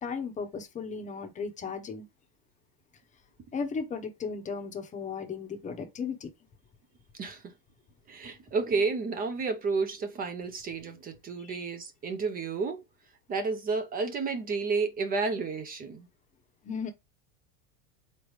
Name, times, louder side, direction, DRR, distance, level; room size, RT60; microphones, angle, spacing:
voice 1, 0.0-2.1 3.5-6.3 11.4-11.6 16.6-16.9, left 5 dB, 20° left, 0.8 m, -35 dB
voice 2, 7.2-7.5 8.1-12.8 13.3-16.1, right 4 dB, 20° right, 0.5 m, -31 dB
3.8 x 3.2 x 3.2 m
supercardioid pair, 130°, 41 cm